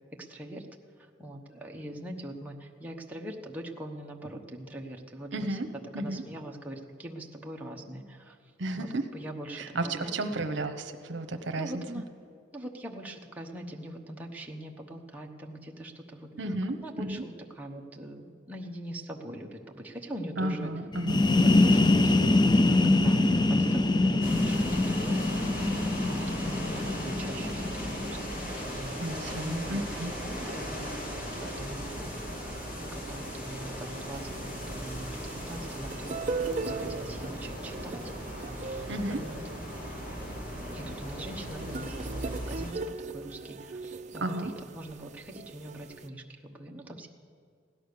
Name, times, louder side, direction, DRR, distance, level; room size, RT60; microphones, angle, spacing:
voice 1, 0.2-0.7 1.0-5.6 6.0-8.9 9.1-10.4 11.6-12.1 12.5-16.3 16.8-20.7 21.1-25.4 26.0-29.0 29.3-32.2 32.4-38.0 38.6-39.4 40.7-42.8 43.1-47.1, right 1 dB, 10° right, 0 dB, 1.0 m, -42 dB
voice 2, 5.3-5.7 5.9-6.2 8.6-9.1 9.6-11.8 16.4-17.2 20.4-21.2 29.0-30.1 38.9-39.2 44.2-44.5, right 1 dB, 65° right, 7 dB, 1.0 m, -33 dB
sound 1, 20.9-28.5, left 2 dB, 25° left, 0.4 m, -24 dB
sound 2, 24.2-42.7, equal, 45° left, 2.5 m, -38 dB
sound 3, 34.2-46.1, right 4 dB, 40° right, 0.5 m, -39 dB
16.5 x 11.0 x 6.7 m, 2.3 s
head